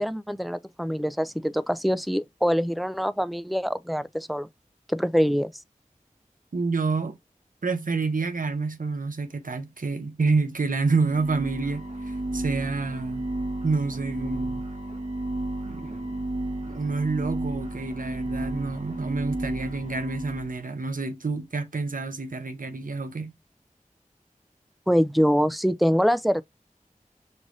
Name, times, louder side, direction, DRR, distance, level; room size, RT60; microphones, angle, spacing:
voice 1, 0.0-4.5 4.9-5.5 24.9-26.4, equal, ahead, 0.3 m, -24 dB
voice 2, 6.5-7.2 7.6-13.3 13.6-14.6 15.7-16.3 16.7-23.3, right 4 dB, 90° right, 0.7 m, -28 dB
sound 1, 10.9-20.6, right 1 dB, 55° right, 1.4 m, -33 dB
5.3 x 2.5 x 3.1 m
wide cardioid pair, 40°, 14 cm